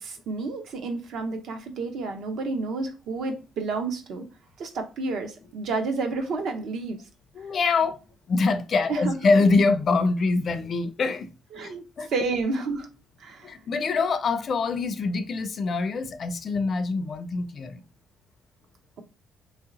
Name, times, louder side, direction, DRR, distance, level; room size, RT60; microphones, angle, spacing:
voice 1, 0.0-4.3 4.6-7.0 8.9-9.2 11.5-11.8 12.1-12.9 13.2-13.5, right 3 dB, 60° right, 0.7 m, -30 dB
voice 2, 7.3-8.0 8.3-11.3 11.5-12.1 13.4-17.8, left 4 dB, 35° left, 0.4 m, -24 dB
3.0 x 2.8 x 3.8 m
cardioid pair, 175°, 0 cm